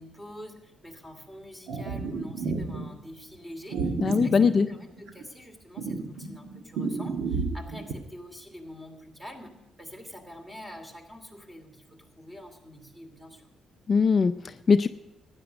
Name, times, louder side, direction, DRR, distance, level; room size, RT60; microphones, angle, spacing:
voice 1, 0.0-13.5, equal, 10° right, 5 dB, 2.7 m, -46 dB
sound 1, 1.7-2.9 3.7-5.3 5.8-7.9, right 4 dB, 80° right, 1.3 m, -31 dB
voice 2, 4.0-4.7 13.9-14.9, left 5 dB, 40° left, 10 dB, 0.4 m, -21 dB
13.0 x 9.8 x 5.1 m, 0.93 s
cardioid pair, 90°, 0 cm